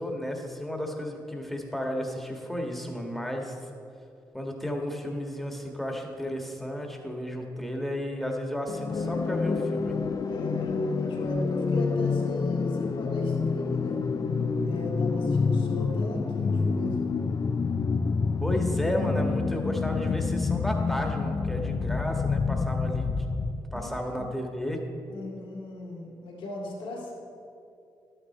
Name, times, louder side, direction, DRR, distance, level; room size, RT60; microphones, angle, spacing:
voice 1, 0.0-3.7 4.3-10.0 18.4-23.3 23.7-24.8, equal, ahead, 1 dB, 1.6 m, -33 dB
sound 1, 8.7-23.6, left 4 dB, 45° left, 0.5 m, -27 dB
voice 2, 10.3-14.0 14.6-17.0 23.7-24.3 25.1-27.1, left 1 dB, 85° left, -2 dB, 2.3 m, -38 dB
11.5 x 8.9 x 4.3 m, 2.6 s
cardioid pair, 65°, 9 cm